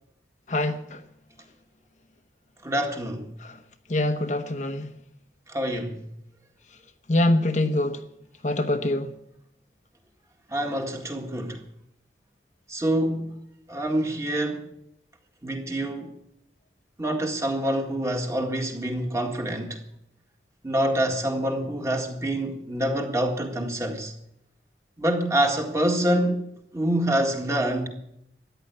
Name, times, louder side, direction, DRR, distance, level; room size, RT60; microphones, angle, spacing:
voice 1, 2.6-3.3 5.5-6.1 10.5-11.6 12.7-13.4 13.7-14.7 15.4-16.1 17.0-19.8 20.6-24.1 25.0-27.9, right 1 dB, 15° right, 1.9 m, -26 dB
voice 2, 3.9-4.9 7.1-8.0 8.4-9.1, left 1 dB, 40° left, 0.9 m, -24 dB
14.0 x 10.0 x 8.2 m
head